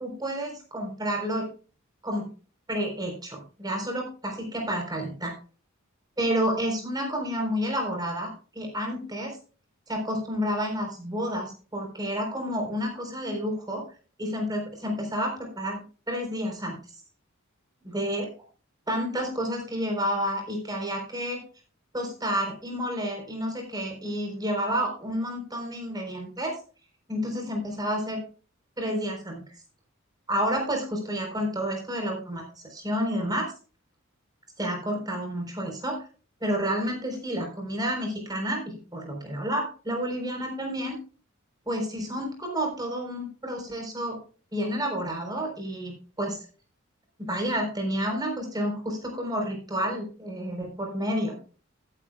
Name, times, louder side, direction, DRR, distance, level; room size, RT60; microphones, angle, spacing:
voice 1, 0.0-1.5 2.0-2.3 2.7-5.3 6.2-9.4 9.9-13.8 14.2-16.8 17.9-18.3 18.9-21.4 21.9-26.6 27.1-28.2 28.8-29.4 30.3-33.5 34.6-36.0 36.4-41.0 41.7-44.2 44.5-46.5 47.2-51.4, equal, 20° right, 2 dB, 3.9 m, -30 dB
14.5 x 10.0 x 2.3 m, 0.37 s
head